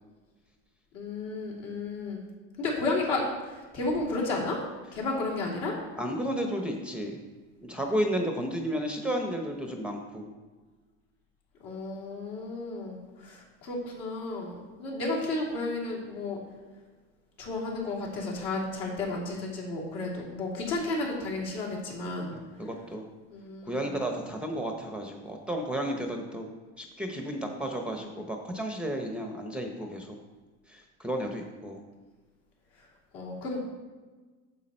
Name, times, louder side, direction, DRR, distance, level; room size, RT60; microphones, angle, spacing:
voice 1, 0.9-2.2 2.6-4.6 4.9-5.8 11.6-16.4 17.4-22.3 23.3-23.9 33.1-33.6, left 2 dB, 60° left, -3 dB, 3.2 m, -32 dB
voice 2, 6.0-7.2 7.6-10.3 22.3-23.1 23.7-26.5 26.8-30.2 30.7-31.8, equal, 5° right, 2 dB, 0.7 m, -33 dB
8.6 x 7.3 x 4.3 m, 1.3 s
supercardioid pair, 120°, 36 cm